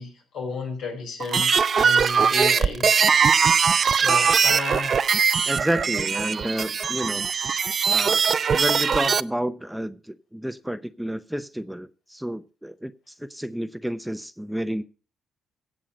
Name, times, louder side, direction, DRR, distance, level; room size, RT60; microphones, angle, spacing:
voice 1, 0.0-2.9 4.0-5.1, left 4 dB, 80° left, 4.9 m, -33 dB
sound 1, 1.2-9.2, right 6 dB, 45° right, 0.5 m, -21 dB
voice 2, 5.4-7.3 7.9-8.2 8.5-14.8, right 1 dB, 5° right, 0.7 m, -30 dB
16.5 x 7.3 x 5.3 m
cardioid pair, 90°, 0 cm